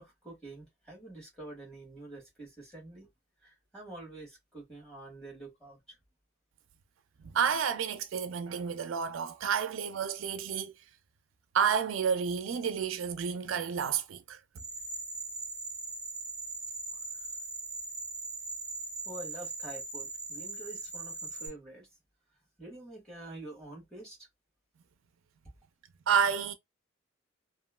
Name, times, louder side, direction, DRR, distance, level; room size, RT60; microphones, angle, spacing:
voice 1, 0.0-3.1 3.4-6.0 16.9-17.3 19.0-21.9 22.6-24.3, right 2 dB, 5° left, 1.6 m, -47 dB
voice 2, 7.3-10.7 11.5-14.4 26.1-26.5, right 7 dB, 75° right, 0.4 m, -30 dB
sound 1, 14.6-21.5, right 3 dB, 20° right, 1.0 m, -40 dB
2.8 x 2.5 x 2.2 m
head